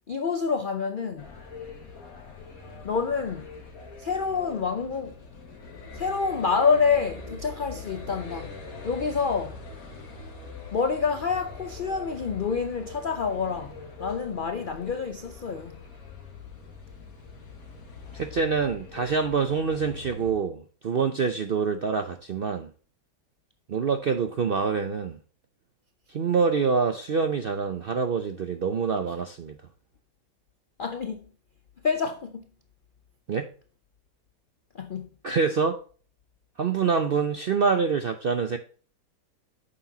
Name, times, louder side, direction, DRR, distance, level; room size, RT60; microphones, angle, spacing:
voice 1, 0.1-1.3 2.8-3.5 4.0-5.2 5.9-8.6 8.8-9.6 10.7-15.8 30.8-31.2 31.8-32.4 34.7-35.1, left 5 dB, 80° left, 0.4 m, -27 dB
sound 1, 1.2-20.3, left 4 dB, 55° left, 2.0 m, -43 dB
voice 2, 18.1-22.7 23.7-25.2 26.1-29.5 33.3-33.5 35.2-35.8 36.6-38.6, right 5 dB, 65° right, 0.5 m, -26 dB
9.2 x 6.8 x 2.8 m
omnidirectional pair, 1.8 m